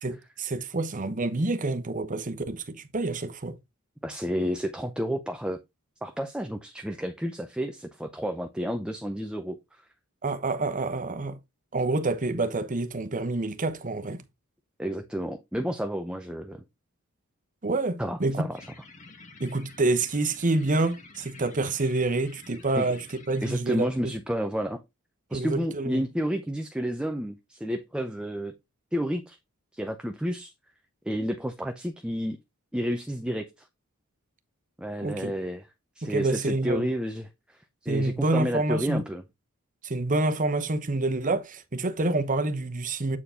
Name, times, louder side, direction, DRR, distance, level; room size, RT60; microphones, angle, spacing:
voice 1, 0.0-3.6 10.2-11.4 11.7-14.2 17.6-18.4 19.4-24.1 25.3-26.0 35.0-35.3 36.0-36.9 37.9-39.0 39.8-43.2, right 2 dB, 40° right, 1.0 m, -27 dB
voice 2, 4.0-5.6 6.0-9.8 14.8-16.6 18.0-18.6 22.8-22.9 23.4-24.8 25.3-28.5 28.9-29.4 29.7-30.5 31.0-32.4 32.7-33.7 34.8-35.7 36.0-39.2, equal, 5° right, 0.6 m, -31 dB
sound 1, 18.6-23.6, left 3 dB, 35° left, 1.5 m, -49 dB
8.4 x 4.7 x 3.7 m
head